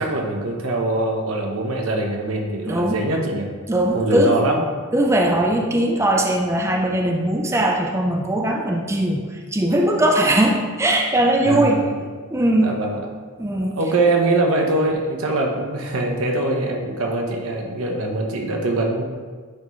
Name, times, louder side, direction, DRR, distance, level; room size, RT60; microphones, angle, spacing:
voice 1, 0.0-3.5 3.9-4.6 11.5-11.8 12.6-13.0 13.7-19.0, right 2 dB, 80° right, 1 dB, 0.9 m, -22 dB
voice 2, 2.7-3.0 3.7-4.4 4.9-11.8 12.3-12.7 13.4-13.8, right 1 dB, 15° right, 1 dB, 0.4 m, -20 dB
9.4 x 3.5 x 3.2 m, 1.5 s
head